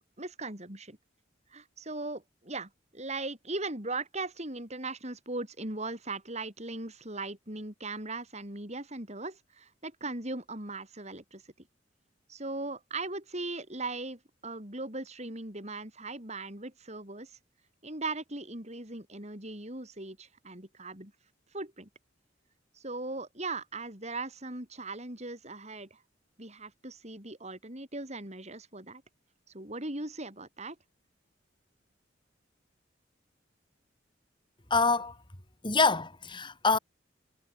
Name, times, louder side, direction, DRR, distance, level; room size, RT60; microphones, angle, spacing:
voice 1, 0.2-1.0 1.5-11.4 12.3-17.3 17.8-21.1 21.5-21.9 22.7-26.0 26.4-29.0 29.5-30.8, right 2 dB, 35° right, 7.6 m, -39 dB
voice 2, 34.7-35.2 35.6-36.8, left 4 dB, 25° left, 4.0 m, -25 dB
head